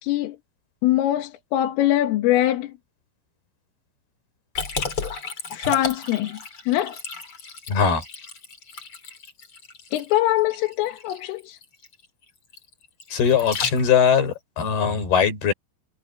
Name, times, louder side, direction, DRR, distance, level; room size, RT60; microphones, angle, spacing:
voice 1, 0.0-0.4 0.8-2.7 5.5-7.0 9.9-11.6, left 14 dB, 80° left, 4.1 m, -23 dB
Liquid, 4.5-14.2, left 4 dB, 30° left, 3.4 m, -34 dB
voice 2, 7.7-8.0 13.1-15.5, left 7 dB, 50° left, 7.4 m, -20 dB
omnidirectional pair, 5.9 m